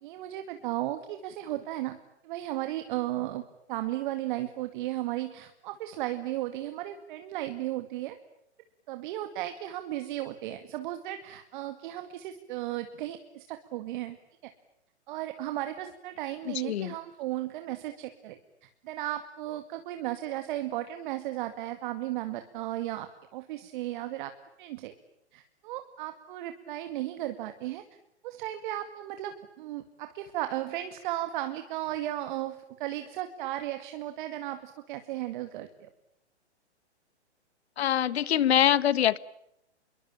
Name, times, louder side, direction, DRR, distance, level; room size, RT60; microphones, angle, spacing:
voice 1, 0.0-8.2 8.9-14.2 14.4-14.5 15.1-24.3 24.6-24.9 25.3-27.8 28.2-35.9, right 14 dB, 45° right, 8 dB, 2.2 m, -35 dB
voice 2, 16.5-16.9 37.8-39.2, left 11 dB, 65° left, 18 dB, 1.5 m, -24 dB
28.0 x 23.0 x 8.9 m, 0.79 s
hypercardioid pair, 135°, 35 cm